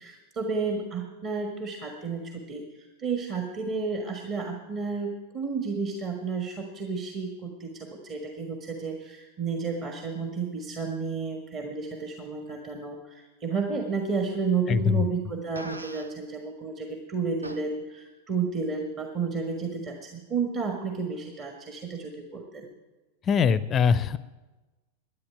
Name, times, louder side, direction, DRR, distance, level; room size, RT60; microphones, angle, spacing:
voice 1, 0.0-22.7, right 5 dB, 30° right, 3 dB, 1.5 m, -32 dB
voice 2, 14.7-15.1 23.2-24.2, left 6 dB, 25° left, 17 dB, 0.5 m, -22 dB
Fart, 15.6-16.1 17.4-17.6, right 1 dB, 80° right, 0.7 m, -40 dB
11.5 x 9.8 x 9.2 m, 1.2 s
figure-of-eight pair, 90°, 0 cm